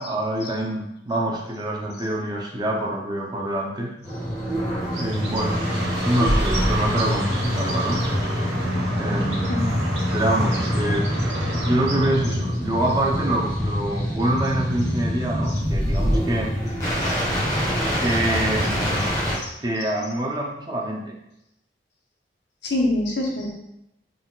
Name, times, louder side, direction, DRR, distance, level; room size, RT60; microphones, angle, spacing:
voice 1, 0.0-3.9 4.9-5.7 6.0-8.0 8.9-9.6 10.1-11.1 11.6-16.5 18.0-19.1 19.6-21.2, right 1 dB, 25° right, -1 dB, 0.6 m, -25 dB
sound 1, 4.0-19.3, equal, 20° left, 1.4 m, -25 dB
Bird, 4.8-12.6, right 1 dB, 90° right, 0.9 m, -32 dB
voice 2, 22.6-23.5, left 1 dB, 80° left, -1 dB, 0.9 m, -25 dB
4.1 x 3.8 x 2.3 m, 0.82 s
head